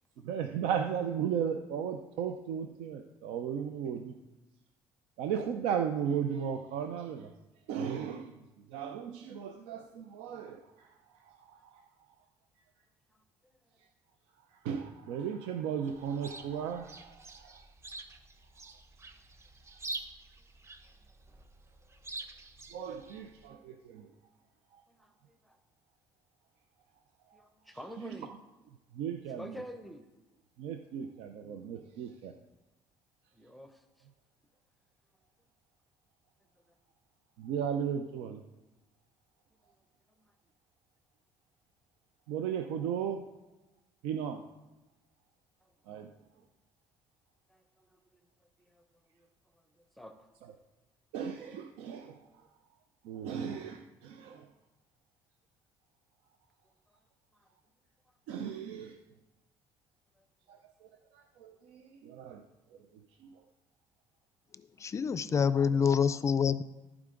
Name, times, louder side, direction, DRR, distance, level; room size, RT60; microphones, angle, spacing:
voice 1, 0.2-4.1 5.2-7.3 7.7-8.3 8.7-10.9 11.5-11.8 14.6-17.4 22.7-24.1 28.0-28.1 28.9-29.5 30.6-32.3 37.4-38.4 42.3-43.3 44.0-44.4 45.9-46.1 51.1-52.2 53.0-54.5 58.3-59.0 61.4-62.4 65.3-65.4, right 8 dB, 85° right, 6 dB, 0.6 m, -35 dB
Chirp tweet, 15.9-23.5, right 2 dB, 30° right, 0.9 m, -47 dB
voice 2, 24.9-25.6 27.3-28.3 29.3-30.0 33.3-33.8 45.9-46.0 47.5-47.9 48.7-48.9 49.1-49.3 50.0-50.2 57.3-57.5 60.2-60.3, equal, ahead, 7 dB, 0.7 m, -48 dB
voice 3, 64.8-66.6, left 6 dB, 30° left, 15 dB, 0.4 m, -26 dB
14.5 x 4.9 x 3.8 m, 1.1 s
cardioid pair, 100°, 10 cm